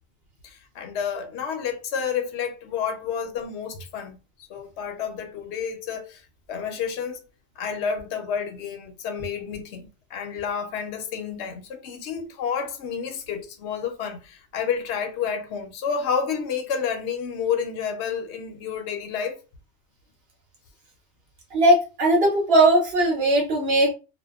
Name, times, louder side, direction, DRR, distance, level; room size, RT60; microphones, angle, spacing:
voice 1, 0.4-4.2 4.5-6.2 6.5-7.2 7.6-19.4, left 7 dB, 65° left, 0.8 m, -30 dB
voice 2, 21.5-23.9, right 1 dB, 55° right, 1.0 m, -19 dB
2.7 x 2.1 x 2.3 m
omnidirectional pair, 1.3 m